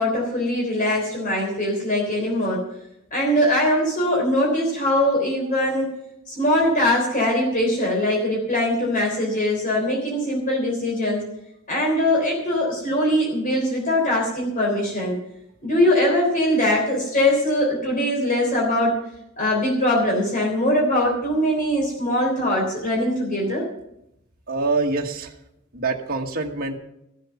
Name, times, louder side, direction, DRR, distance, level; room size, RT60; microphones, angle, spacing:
voice 1, 0.0-2.6 3.1-5.9 6.3-11.2 11.7-15.1 15.6-18.9 19.4-23.6, left 1 dB, 40° left, -2 dB, 3.5 m, -21 dB
voice 2, 24.5-25.3 25.7-26.8, right 3 dB, 45° right, 1 dB, 1.3 m, -25 dB
14.5 x 7.7 x 6.9 m, 0.81 s
head